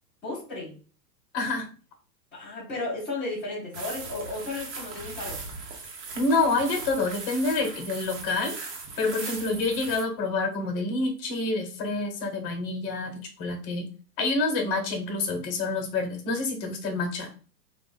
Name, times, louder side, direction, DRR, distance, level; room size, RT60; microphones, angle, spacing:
voice 1, 0.2-0.7 2.3-5.4, left 2 dB, 5° left, -13 dB, 0.3 m, -34 dB
voice 2, 1.3-1.7 6.1-8.5 9.0-13.9 14.2-17.3, left 3 dB, 35° left, 4 dB, 0.8 m, -27 dB
sound 1, 3.7-10.0, right 4 dB, 75° right, 1.1 m, -39 dB
2.4 x 2.4 x 3.6 m, 0.38 s
hypercardioid pair, 115°, 50 cm